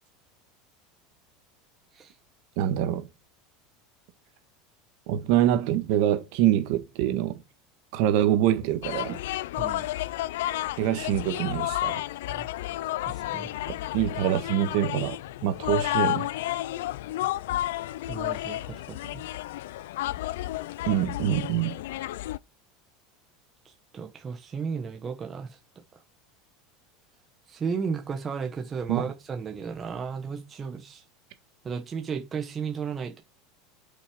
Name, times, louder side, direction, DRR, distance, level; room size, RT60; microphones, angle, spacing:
voice 1, 2.6-3.1 5.1-7.4 7.9-9.2 10.8-12.0 13.7-16.3 20.8-21.7 28.9-29.1, right 11 dB, 50° right, 1.5 m, -25 dB
sound 1, 8.8-22.4, left 15 dB, 85° left, 0.4 m, -31 dB
voice 2, 9.6-9.9 12.3-12.5 13.0-13.5 18.1-19.2 23.6-25.6 27.5-31.0 31.6-33.2, right 6 dB, 15° right, 1.3 m, -34 dB
8.3 x 5.8 x 5.2 m
supercardioid pair, 175°, 0 cm